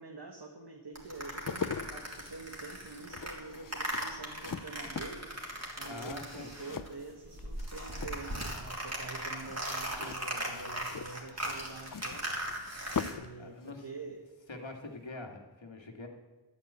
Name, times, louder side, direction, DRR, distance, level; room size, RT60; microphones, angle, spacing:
voice 1, 0.0-12.4 13.1-14.3, right 3 dB, 60° right, 2 dB, 1.6 m, -46 dB
sound 1, 1.0-7.0 7.2-13.1, right 1 dB, 35° right, 3.3 m, -39 dB
sound 2, 1.2-7.6 7.9-8.6 9.9-13.4 13.6-13.8, left 6 dB, 45° left, 0.6 m, -41 dB
voice 2, 5.9-6.5 9.4-9.5 13.4-13.9 14.5-16.1, left 2 dB, 80° left, 2 dB, 2.1 m, -44 dB
12.0 x 8.7 x 8.8 m, 1.3 s
wide cardioid pair, 55°, 45 cm